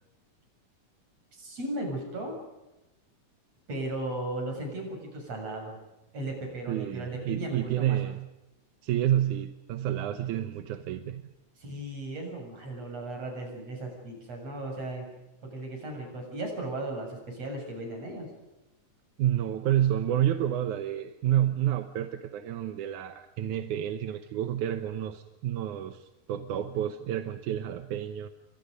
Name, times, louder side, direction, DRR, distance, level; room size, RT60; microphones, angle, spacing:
voice 1, 1.3-2.4 3.7-5.8 6.1-8.0 11.6-15.1 15.4-18.3, right 1 dB, 55° right, 2 dB, 8.3 m, -36 dB
voice 2, 6.7-8.3 8.8-11.2 19.2-28.3, right 11 dB, 90° right, 8 dB, 2.5 m, -29 dB
28.5 x 24.5 x 5.3 m, 1.0 s
omnidirectional pair, 3.4 m